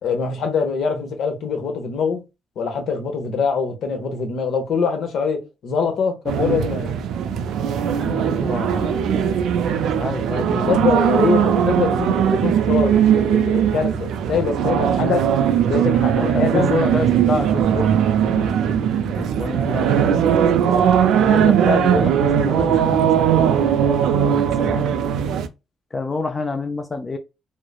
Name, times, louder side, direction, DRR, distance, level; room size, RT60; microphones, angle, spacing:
voice 1, 0.0-2.2 2.6-6.9 10.6-15.2 15.6-16.7 20.6-20.9, left 5 dB, 70° left, 0.8 m, -23 dB
sound 1, 6.3-25.5, right 9 dB, 80° right, 0.3 m, -19 dB
voice 2, 7.9-9.1 9.8-10.7 11.1-11.4 16.1-17.9 18.2-20.2 21.2-24.9 25.9-27.2, left 3 dB, 30° left, 0.4 m, -28 dB
3.0 x 2.0 x 2.2 m
cardioid pair, 90°, 0 cm